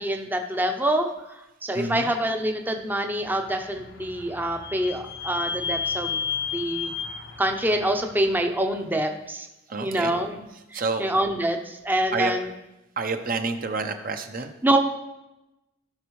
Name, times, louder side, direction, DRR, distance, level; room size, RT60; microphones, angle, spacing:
voice 1, 0.0-6.2 6.5-6.9 7.4-9.5 9.8-12.5 14.6-14.8, right 1 dB, 10° right, 4 dB, 0.7 m, -26 dB
voice 2, 1.7-2.1 9.7-10.2 10.7-11.1 12.1-12.3 13.0-14.5, right 3 dB, 45° right, 7 dB, 0.8 m, -28 dB
Vehicle / Squeak, 3.2-8.8, left 6 dB, 75° left, 0.9 m, -33 dB
16.0 x 6.0 x 3.2 m, 0.97 s
head